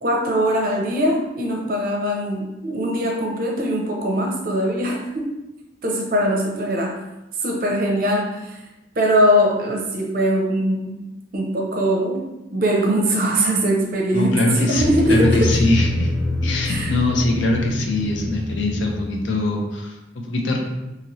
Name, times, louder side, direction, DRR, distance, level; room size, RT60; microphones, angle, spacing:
voice 1, 0.0-5.3 5.8-7.0 7.4-8.6 9.0-11.0 11.3-15.6 16.7-16.9, equal, 45° right, 0 dB, 0.5 m, -21 dB
voice 2, 14.1-16.1 16.4-20.6, left 2 dB, 75° left, 1 dB, 0.6 m, -22 dB
sound 1, 14.8-19.5, left 1 dB, 5° right, 0.9 m, -25 dB
2.8 x 2.7 x 3.0 m, 0.99 s
head